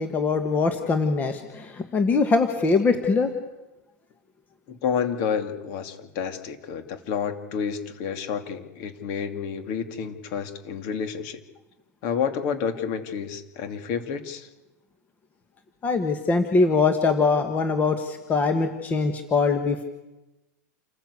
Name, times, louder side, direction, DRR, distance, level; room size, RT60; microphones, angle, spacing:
voice 1, 0.0-3.3 15.8-19.8, left 4 dB, 20° left, 7 dB, 1.6 m, -22 dB
voice 2, 4.7-11.4 12.0-14.5, left 7 dB, 45° left, 8 dB, 2.8 m, -29 dB
28.5 x 15.0 x 8.4 m, 1.0 s
supercardioid pair, 150°, 9 cm